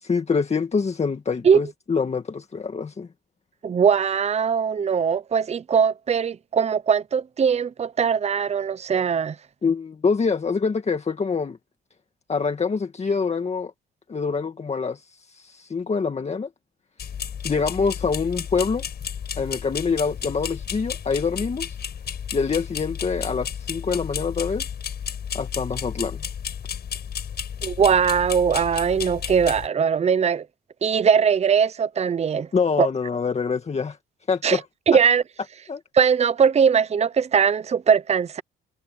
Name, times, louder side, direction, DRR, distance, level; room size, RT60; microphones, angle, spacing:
voice 1, 0.0-3.1 9.6-11.6 12.3-13.7 14.1-16.5 17.4-18.8 19.4-21.8 22.3-24.7 25.3-26.2 32.5-34.0 34.3-34.6 35.7-35.8, left 5 dB, 35° left, 1.9 m, -25 dB
voice 2, 3.6-9.4 27.6-30.5 30.8-32.5 32.8-32.9 34.4-34.6 34.9-35.2 35.9-38.4, right 7 dB, 35° right, 0.7 m, -20 dB
sound 1, 17.0-29.7, left 8 dB, 55° left, 5.5 m, -32 dB
cardioid pair, 90°, 20 cm